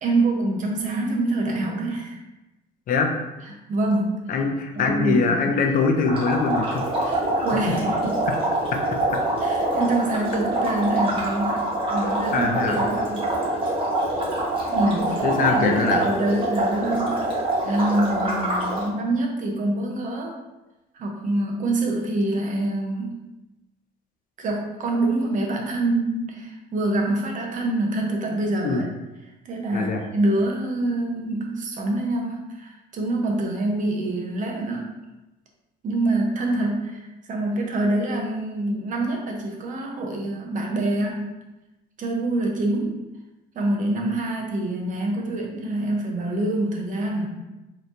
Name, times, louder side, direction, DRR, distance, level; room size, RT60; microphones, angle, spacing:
voice 1, 0.0-2.2 3.7-4.3 4.8-5.6 7.0-8.2 9.4-13.2 14.7-17.2 17.6-20.4 20.9-23.2 24.4-28.9 29.4-34.8 35.8-41.3 42.0-43.0 43.5-47.3, right 2 dB, 50° right, 1 dB, 0.8 m, -26 dB
voice 2, 4.3-6.9 12.3-12.8 15.2-16.0 28.6-28.8 29.7-30.0, left 4 dB, 55° left, 3 dB, 0.6 m, -22 dB
sound 1, 6.1-18.9, right 1 dB, 30° right, 1.3 m, -25 dB
4.1 x 3.1 x 2.6 m, 1.0 s
cardioid pair, 110°, 17 cm